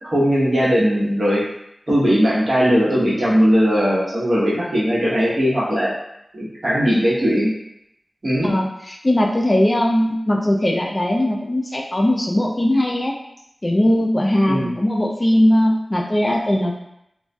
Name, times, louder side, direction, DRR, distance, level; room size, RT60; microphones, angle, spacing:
voice 1, 0.0-1.4 1.9-5.9 6.3-7.5 8.2-8.5 14.5-14.7, equal, 55° right, -8 dB, 1.0 m, -18 dB
voice 2, 8.4-13.1 13.6-16.8, left 1 dB, 30° left, 0 dB, 0.3 m, -19 dB
2.5 x 2.2 x 2.2 m, 0.80 s
wide cardioid pair, 55°, 0 cm